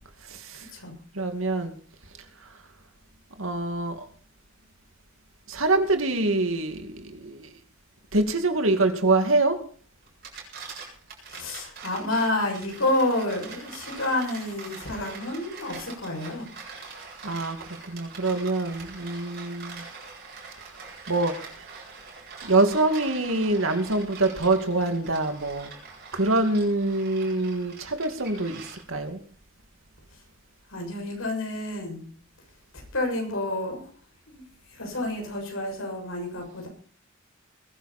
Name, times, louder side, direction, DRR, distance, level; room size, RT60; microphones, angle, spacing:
voice 1, 0.2-0.7 1.1-1.7 3.4-4.1 5.5-7.5 8.1-9.6 17.2-19.8 21.1-21.6 22.4-25.7 26.1-29.2, right 2 dB, 70° right, 2.4 m, -25 dB
sound 1, 10.1-29.1, right 5 dB, 50° right, 7.7 m, -43 dB
voice 2, 11.3-16.5 30.7-32.1 32.9-33.9 34.3-34.4 34.7-36.7, left 1 dB, 75° left, 7.1 m, -29 dB
21.0 x 12.0 x 4.4 m
head